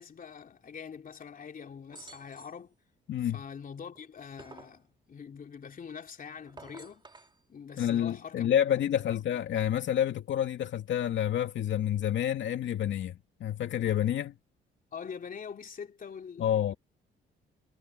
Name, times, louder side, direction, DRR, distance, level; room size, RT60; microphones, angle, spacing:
voice 1, 0.0-2.8 3.2-7.0 7.5-8.5 9.1-9.2 14.9-16.8, left 6 dB, 45° left, 3.1 m, -44 dB
sound 1, 1.9-2.6 4.0-4.8 6.4-7.4, right 2 dB, 20° right, 2.7 m, -51 dB
voice 2, 3.1-3.4 7.8-14.3 16.4-16.7, left 10 dB, 70° left, 2.3 m, -29 dB
cardioid pair, 90°, 20 cm